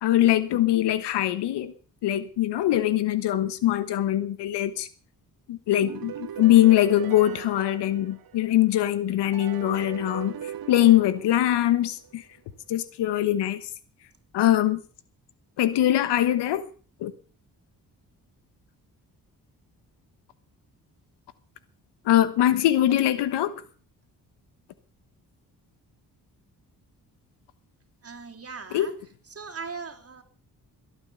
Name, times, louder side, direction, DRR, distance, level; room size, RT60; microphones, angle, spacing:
voice 1, 0.0-1.7 2.0-4.9 5.5-10.4 10.7-12.2 12.7-13.6 14.3-14.8 15.6-16.7 17.0-17.1 22.0-23.5 28.7-28.9, left 13 dB, 85° left, 1.3 m, -22 dB
sound 1, 5.8-8.7 9.3-12.2, right 9 dB, 60° right, 1.6 m, -39 dB
voice 2, 28.0-28.9 29.3-30.2, right 5 dB, 35° right, 3.2 m, -39 dB
22.0 x 9.1 x 7.0 m
supercardioid pair, 55°, 40 cm